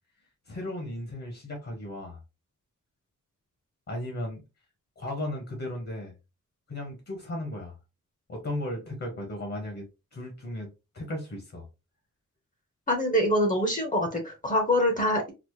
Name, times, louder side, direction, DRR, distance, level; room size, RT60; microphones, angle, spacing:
voice 1, 0.5-2.2 3.9-4.4 5.0-6.1 6.7-7.8 8.3-9.9 10.1-10.7 10.9-11.7, left 1 dB, 50° left, 1.2 m, -35 dB
voice 2, 12.9-15.3, equal, 25° left, 0.8 m, -25 dB
4.1 x 2.0 x 3.1 m
wide cardioid pair, 135°, 32 cm